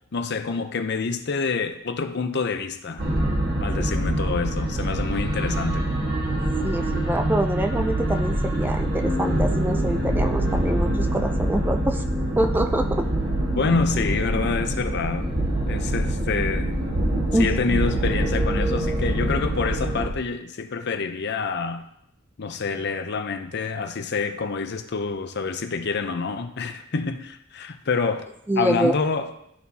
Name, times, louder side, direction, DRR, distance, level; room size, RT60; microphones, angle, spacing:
voice 1, 0.1-3.0 3.6-5.9 13.5-15.3 15.7-16.8 17.3-21.9 22.4-28.3 28.6-29.3, left 4 dB, 55° left, 8 dB, 0.6 m, -27 dB
sound 1, 3.0-20.1, right 1 dB, 50° right, 1.5 m, -25 dB
voice 2, 6.6-12.0 12.4-13.0 17.3-17.8 28.5-29.0, right 1 dB, 10° right, 6 dB, 0.3 m, -25 dB
13.0 x 4.3 x 2.8 m, 0.77 s
head